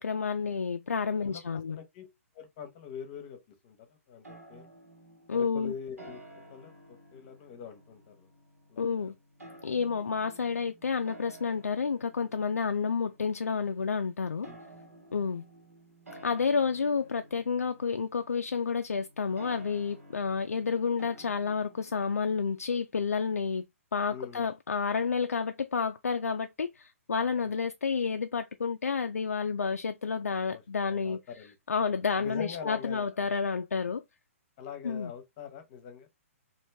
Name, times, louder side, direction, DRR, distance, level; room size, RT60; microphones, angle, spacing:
voice 1, 0.0-1.8 5.3-5.7 8.8-9.1 9.6-14.5 15.1-15.4 16.2-23.6 23.9-31.2 31.7-34.0 34.8-35.1, left 5 dB, 80° left, 0.3 m, -30 dB
voice 2, 1.2-2.1 2.3-4.7 5.3-6.2 6.5-8.3 8.7-9.1 14.4-14.8 24.1-24.5 24.9-25.0 27.4-27.6 30.5-30.6 30.9-31.5 32.2-33.3 34.6-36.1, left 7 dB, 35° left, 0.9 m, -44 dB
sound 1, 4.2-22.7, right 1 dB, 90° right, 1.3 m, -53 dB
3.1 x 2.6 x 3.2 m
figure-of-eight pair, 125°, 8 cm